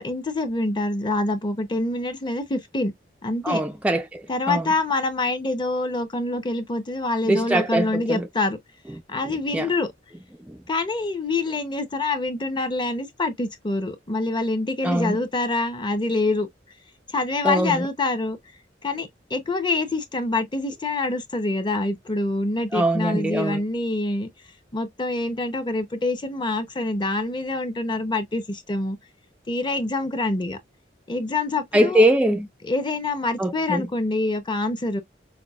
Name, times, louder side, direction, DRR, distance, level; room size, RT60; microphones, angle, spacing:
voice 1, 0.0-2.9 3.2-3.6 4.3-8.6 9.1-9.9 10.7-16.5 17.1-18.4 18.8-24.3 24.7-29.0 29.5-30.6 31.1-32.1 32.6-35.0, left 2 dB, 25° left, 0.7 m, -26 dB
voice 2, 3.4-4.6 7.3-8.2 9.5-9.7 10.5-10.6 14.8-15.2 17.4-17.9 22.7-23.6 31.7-32.5 33.4-33.9, right 1 dB, 5° right, 0.3 m, -22 dB
5.7 x 2.1 x 2.3 m
head